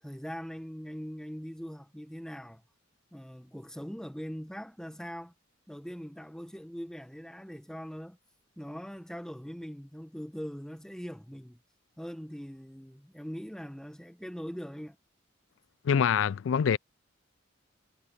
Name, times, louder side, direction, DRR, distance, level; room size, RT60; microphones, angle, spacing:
voice 1, 0.0-2.6 3.1-5.3 5.7-8.2 8.6-11.6 12.0-15.0, equal, 5° left, 1.3 m, -41 dB
voice 2, 15.8-16.8, left 7 dB, 75° left, 0.3 m, -25 dB
head